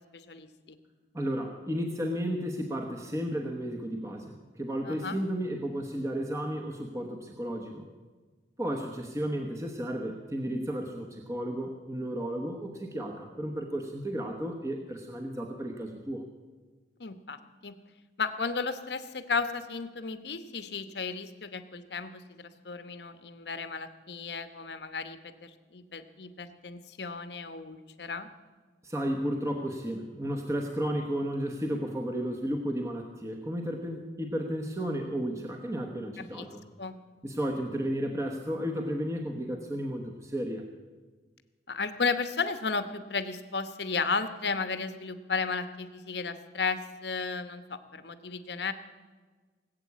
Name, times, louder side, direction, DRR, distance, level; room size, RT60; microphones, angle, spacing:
voice 1, 0.1-0.8 4.9-5.2 17.0-17.4 17.6-17.8 18.2-28.3 36.3-36.5 36.8-37.0 41.7-48.7, left 4 dB, 70° left, 10 dB, 1.0 m, -34 dB
voice 2, 1.1-7.9 8.6-16.3 28.8-36.7 37.2-40.7, equal, 15° right, 1 dB, 1.1 m, -33 dB
19.0 x 8.4 x 8.3 m, 1.4 s
head